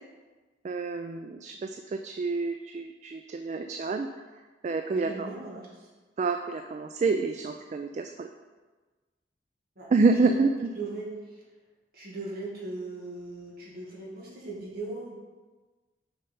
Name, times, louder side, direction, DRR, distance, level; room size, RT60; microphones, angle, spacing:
voice 1, 0.6-1.7 2.0-4.1 4.6-5.1 6.2-8.3 9.9-10.5, right 4 dB, 40° right, 6 dB, 0.3 m, -27 dB
voice 2, 4.8-5.9 9.8-10.4 10.7-11.4 11.9-15.1, right 2 dB, 55° right, -4 dB, 2.0 m, -39 dB
6.5 x 4.5 x 5.4 m, 1.3 s
head